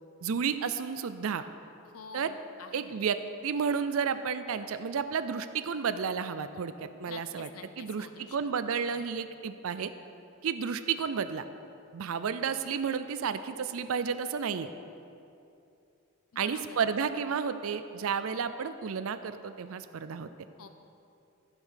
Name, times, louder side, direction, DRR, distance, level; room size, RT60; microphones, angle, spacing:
voice 1, 0.2-1.4 2.1-2.3 2.7-3.2 3.4-7.5 7.8-9.9 10.4-11.4 11.9-14.7 16.4-20.3, right 6 dB, 70° right, 11 dB, 0.4 m, -32 dB
voice 2, 1.9-3.0 7.1-8.4 8.9-9.0 16.3-16.8 20.6-20.7, left 5 dB, 80° left, 8 dB, 0.7 m, -48 dB
14.0 x 5.3 x 6.4 m, 2.7 s
head